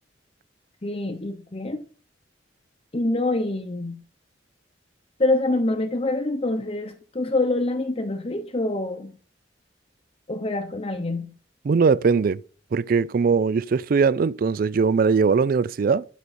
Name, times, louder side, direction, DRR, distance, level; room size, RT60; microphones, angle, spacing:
voice 1, 0.8-1.8 2.9-4.0 5.2-9.2 10.3-11.3, left 2 dB, 35° left, 0.8 m, -26 dB
voice 2, 11.7-12.4 12.7-16.1, right 5 dB, 50° right, 0.3 m, -20 dB
12.5 x 5.2 x 4.2 m
head